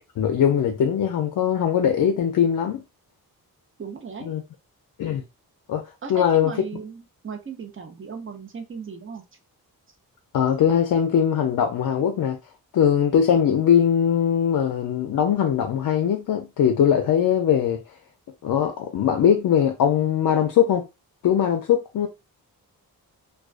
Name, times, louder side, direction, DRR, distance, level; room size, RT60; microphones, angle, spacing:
voice 1, 0.2-2.8 4.3-4.4 5.0-5.2 5.7-5.8 6.1-6.5 10.3-12.4 12.7-17.8 18.4-20.8 21.2-22.1, left 8 dB, 60° left, 0.5 m, -21 dB
voice 2, 3.8-4.3 6.0-9.2, right 5 dB, 35° right, 0.6 m, -36 dB
2.3 x 2.3 x 2.3 m
cardioid pair, 85°, 37 cm